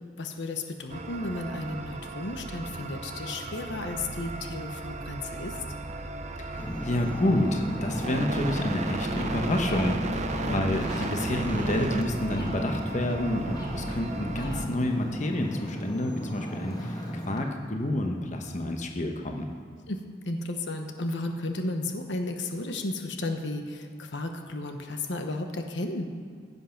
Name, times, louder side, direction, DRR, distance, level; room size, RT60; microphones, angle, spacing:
voice 1, 0.2-5.6 10.4-10.7 19.9-26.1, left 2 dB, 70° left, 5 dB, 1.1 m, -33 dB
sound 1, 0.9-14.7, right 2 dB, 40° right, 0.7 m, -35 dB
voice 2, 6.4-17.0 17.3-19.5, left 1 dB, 40° left, 3 dB, 1.0 m, -29 dB
Ocean, 6.5-17.4, equal, 20° left, 1.4 m, -35 dB
15.5 x 8.1 x 5.8 m, 2.1 s
head